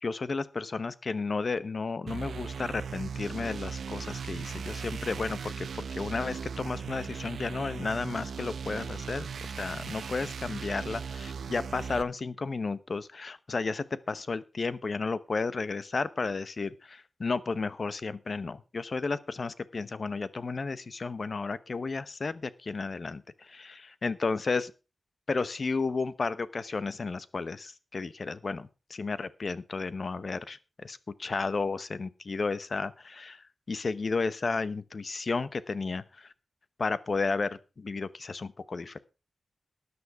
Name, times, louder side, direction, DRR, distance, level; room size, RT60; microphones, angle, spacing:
voice 1, 0.0-9.3 9.6-24.7 25.3-33.4 33.7-36.3 36.8-39.0, left 4 dB, 45° left, 16 dB, 0.9 m, -33 dB
sound 1, 2.1-12.0, right 6 dB, 85° right, 1.0 m, -38 dB
13.0 x 9.7 x 4.8 m, 0.31 s
wide cardioid pair, 140°, 0 cm